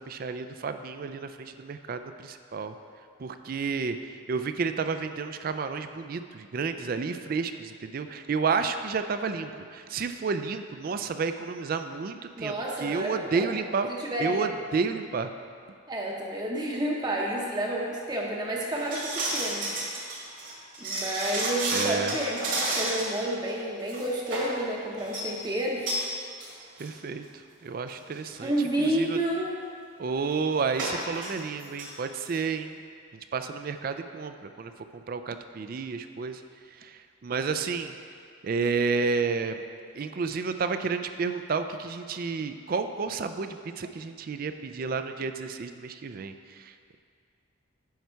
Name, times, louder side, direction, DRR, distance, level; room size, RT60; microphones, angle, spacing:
voice 1, 0.1-2.7 3.2-4.0 4.3-12.5 12.8-13.9 14.2-15.3 21.7-22.1 26.8-27.2 27.6-28.5 28.8-29.2 30.0-32.7 33.3-36.4 36.8-37.9 38.4-39.6 39.9-47.0, right 5 dB, 45° right, 9 dB, 0.3 m, -31 dB
voice 2, 12.3-13.5 13.9-14.5 15.9-19.7 20.8-25.9 28.4-29.6, right 1 dB, 20° right, -2 dB, 0.7 m, -30 dB
sound 1, 18.8-23.2 23.5-23.6 23.9-24.6 25.0-25.3 25.9-26.1 26.4-26.5 26.8-26.9 27.7-27.8 28.1-28.4 30.7-31.3 31.6-31.9 32.2-32.3, right 2 dB, 60° right, 1.7 m, -31 dB
9.3 x 5.6 x 4.6 m, 2.3 s
head